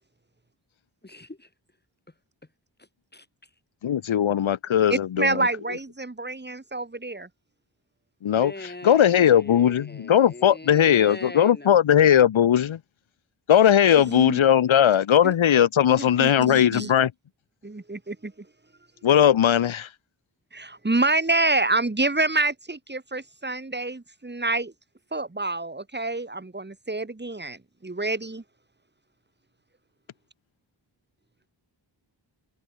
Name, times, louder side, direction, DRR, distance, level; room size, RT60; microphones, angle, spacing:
voice 1, 1.0-1.5 2.8-3.5 8.3-11.8, left 2 dB, 20° left, 2.6 m, -41 dB
voice 2, 3.8-5.5 8.2-8.5 8.8-12.8 13.5-17.1 19.0-19.9, left 9 dB, 90° left, 1.0 m, -19 dB
voice 3, 4.9-7.3 14.1-14.4 15.2-15.3 16.0-16.9 17.6-18.3 20.5-24.7 25.1-28.4, right 2 dB, 20° right, 2.9 m, -27 dB
wide cardioid pair, 95°, 46 cm